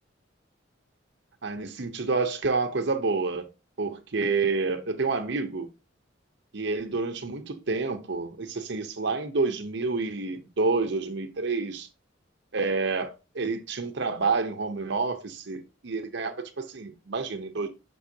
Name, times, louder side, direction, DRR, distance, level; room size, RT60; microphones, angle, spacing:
voice 1, 1.4-3.5 3.8-5.7 6.5-11.9 12.5-17.7, right 4 dB, 65° right, 0.8 m, -28 dB
6.3 x 5.5 x 2.8 m
head